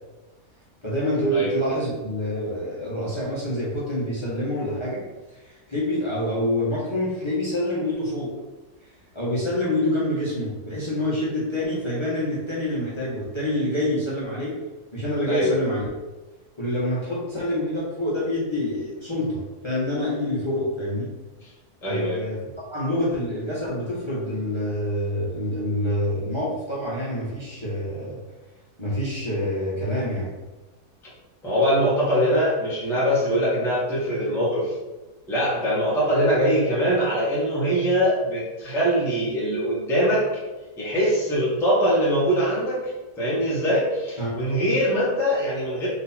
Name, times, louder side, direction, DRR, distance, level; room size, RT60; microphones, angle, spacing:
voice 1, 0.8-5.0 5.4-8.3 8.8-8.9 9.1-14.5 14.9-15.9 16.6-21.1 21.8-22.4 22.7-28.2 28.8-30.3 44.2-44.4, left 1 dB, 20° left, -8 dB, 1.2 m, -26 dB
voice 2, 21.8-22.2 31.4-34.7 35.3-40.3 40.8-45.9, equal, ahead, -8 dB, 1.1 m, -22 dB
4.0 x 3.1 x 4.2 m, 1.1 s
omnidirectional pair, 1.6 m